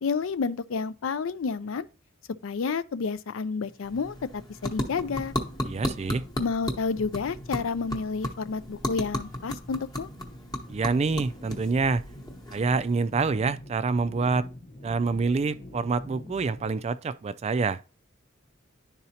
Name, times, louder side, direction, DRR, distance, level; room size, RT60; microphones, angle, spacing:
voice 1, 0.0-1.9 2.4-5.3 6.4-10.1, left 5 dB, 75° left, 0.4 m, -30 dB
sound 1, 3.7-13.1, equal, 20° left, 0.9 m, -35 dB
sound 2, 4.9-16.8, left 1 dB, 45° left, 0.9 m, -46 dB
voice 2, 5.6-6.2 10.7-12.0 12.5-14.5 14.8-17.8, right 4 dB, 30° right, 0.3 m, -26 dB
11.0 x 4.0 x 2.8 m
head